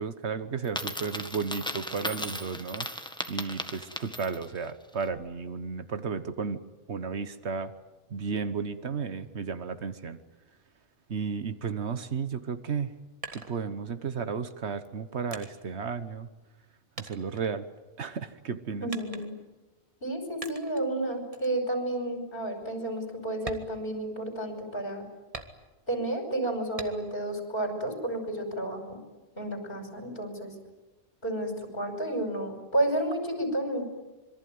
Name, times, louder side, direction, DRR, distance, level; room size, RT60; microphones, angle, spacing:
voice 1, 0.0-2.9 3.3-6.6 6.9-7.7 8.1-10.2 11.1-12.9 13.3-16.3 17.0-17.7 18.0-18.9, right 5 dB, 75° right, 12 dB, 1.4 m, -33 dB
Coin (dropping), 0.6-4.6, equal, 5° left, 1.6 m, -36 dB
sound 1, 13.0-14.2 14.8-16.7 17.0-18.1 18.9-19.6 20.4-20.9 21.3-21.6 22.0-22.1 22.6-22.7 23.3-24.5 25.3-26.0 26.8-27.3 27.7-28.6, right 3 dB, 30° right, 1.7 m, -44 dB
voice 2, 18.8-19.3 20.0-25.0 25.9-29.0 29.4-30.5 31.2-33.9, right 1 dB, 50° left, 4 dB, 5.9 m, -31 dB
26.0 x 23.0 x 9.4 m, 1.1 s
omnidirectional pair, 1.2 m